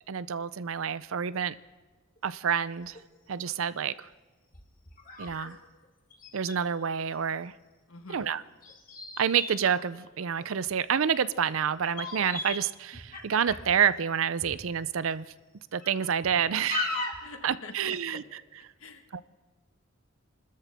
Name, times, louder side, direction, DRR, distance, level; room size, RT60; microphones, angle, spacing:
voice 1, 0.1-1.5 2.2-3.0 3.3-4.1 5.2-5.6 6.3-7.5 8.1-8.4 9.2-15.3 15.7-17.1 17.4-18.4 19.1-19.2, right 7 dB, 75° right, 16 dB, 0.5 m, -28 dB
sound 1, 2.2-2.3 2.8-3.0 3.6-3.7 4.5-5.5 5.8-5.9 6.1-6.5 8.6-10.7 11.4-11.6 11.8-12.6 12.9-13.8 14.4-14.6 15.1-15.2 15.8-16.3 16.7-17.3, left 3 dB, 40° left, 2.3 m, -37 dB
voice 2, 7.9-8.3 17.2-17.7 18.8-19.2, left 3 dB, 75° left, 6 dB, 1.5 m, -46 dB
29.0 x 13.0 x 3.5 m, 1.3 s
head